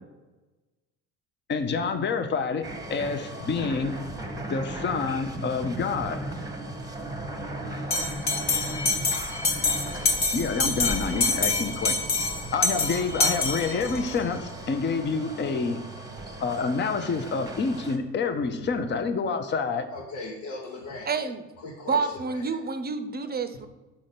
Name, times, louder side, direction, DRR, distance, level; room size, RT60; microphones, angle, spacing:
voice 1, 1.5-2.6 2.9-4.0 4.5-6.2 10.3-12.0 12.5-15.8 16.4-19.9, left 4 dB, 30° left, 7 dB, 0.7 m, -28 dB
sound 1, 2.6-18.0, right 2 dB, 10° right, 1.0 m, -37 dB
Bell, 7.9-14.1, left 3 dB, 50° left, 1.2 m, -26 dB
voice 2, 19.9-21.1 21.6-22.6, left 2 dB, 75° left, -3 dB, 1.2 m, -38 dB
voice 3, 21.1-21.5 21.9-23.7, right 5 dB, 25° right, 10 dB, 0.7 m, -28 dB
5.0 x 4.3 x 5.9 m, 1.2 s
hypercardioid pair, 60°, 37 cm